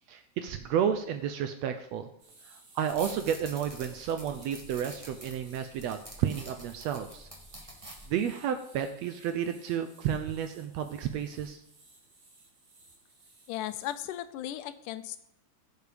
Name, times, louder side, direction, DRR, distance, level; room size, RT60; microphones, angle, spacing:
voice 1, 0.1-2.1 2.5-7.3 8.1-11.6, right 8 dB, 75° right, 8 dB, 1.6 m, -31 dB
sound 1, 2.2-14.2, right 2 dB, 50° right, 3.8 m, -58 dB
sound 2, 2.9-8.1, right 1 dB, 15° right, 1.7 m, -47 dB
voice 2, 13.5-15.3, left 12 dB, 90° left, 12 dB, 2.3 m, -36 dB
16.5 x 6.7 x 5.1 m, 0.77 s
omnidirectional pair, 3.6 m